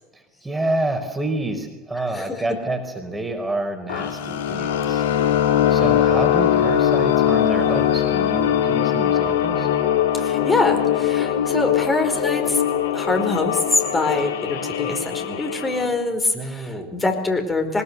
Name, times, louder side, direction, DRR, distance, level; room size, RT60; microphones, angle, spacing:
voice 1, 0.1-5.0 5.7-9.7 16.3-16.9, right 2 dB, 10° right, 6 dB, 4.6 m, -28 dB
voice 2, 2.0-2.4 10.1-12.6 12.9-17.8, left 2 dB, 15° left, 4 dB, 4.9 m, -24 dB
sound 1, 3.9-15.9, left 10 dB, 70° left, 2.7 m, -21 dB
24.0 x 21.0 x 8.2 m, 0.97 s
figure-of-eight pair, 75°, 0 cm